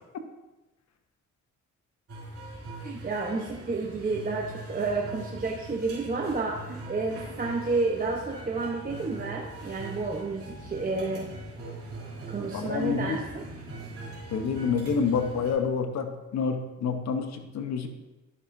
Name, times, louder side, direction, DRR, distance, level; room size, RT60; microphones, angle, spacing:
sound 1, 2.1-15.5, right 2 dB, 50° right, 2.6 m, -42 dB
voice 1, 2.8-11.3 12.3-13.4, right 3 dB, 30° right, 0 dB, 0.9 m, -30 dB
voice 2, 12.5-13.2 14.3-17.9, left 5 dB, 60° left, 6 dB, 1.0 m, -28 dB
11.0 x 6.1 x 2.7 m, 1.1 s
cardioid pair, 90°, 30 cm